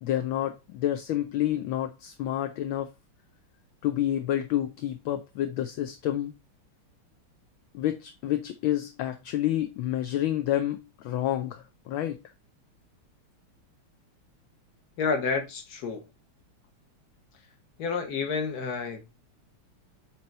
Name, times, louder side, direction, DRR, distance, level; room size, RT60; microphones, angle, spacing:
voice 1, 0.0-2.9 3.8-6.3 7.7-12.2, left 12 dB, 75° left, 1.3 m, -29 dB
voice 2, 15.0-16.1 17.8-19.1, left 5 dB, 50° left, 1.7 m, -30 dB
8.9 x 3.2 x 4.0 m
omnidirectional pair, 2.4 m